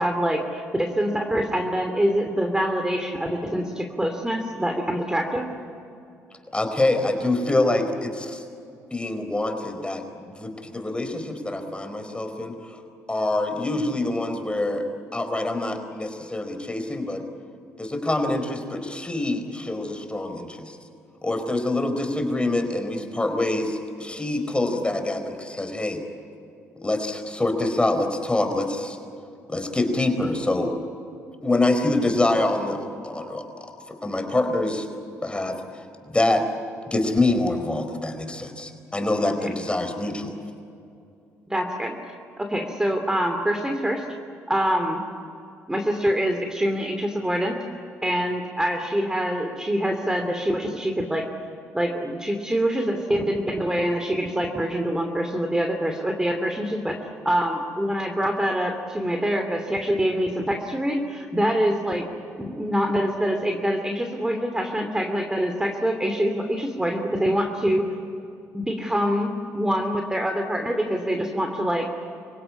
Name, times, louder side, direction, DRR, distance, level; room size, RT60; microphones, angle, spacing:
voice 1, 0.0-5.5 39.4-39.5 41.5-42.0 42.4-44.0 44.5-45.0 45.7-47.6 48.0-51.3 51.7-56.9 57.2-62.0 62.4-67.8 68.5-71.9, equal, 10° right, 4 dB, 2.8 m, -25 dB
voice 2, 6.5-8.4 8.9-12.8 13.1-14.8 15.1-17.2 17.8-20.7 21.2-26.0 26.8-29.0 29.5-30.7 31.4-34.9 35.2-35.8 36.1-36.4 36.9-40.4, left 2 dB, 15° left, 6 dB, 4.5 m, -25 dB
26.0 x 17.0 x 9.8 m, 2.6 s
supercardioid pair, 60°, 6 cm